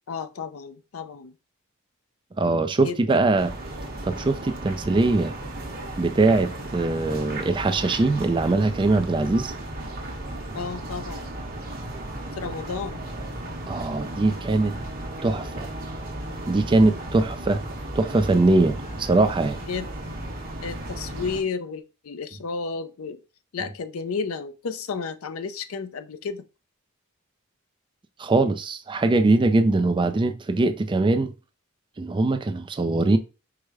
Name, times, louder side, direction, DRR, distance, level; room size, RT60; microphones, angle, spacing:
voice 1, 0.1-1.3 2.8-3.3 10.5-11.3 12.3-13.0 19.6-20.1 20.6-23.2 23.5-26.5, left 5 dB, 75° left, 0.5 m, -32 dB
voice 2, 2.4-3.5 4.0-5.3 6.0-9.5 13.7-14.8 15.2-15.7 16.5-17.6 17.9-19.6 28.2-31.3 32.0-33.2, right 2 dB, 25° right, 0.4 m, -22 dB
sound 1, 3.4-21.4, right 1 dB, 45° right, 1.1 m, -35 dB
4.7 x 2.1 x 4.7 m
head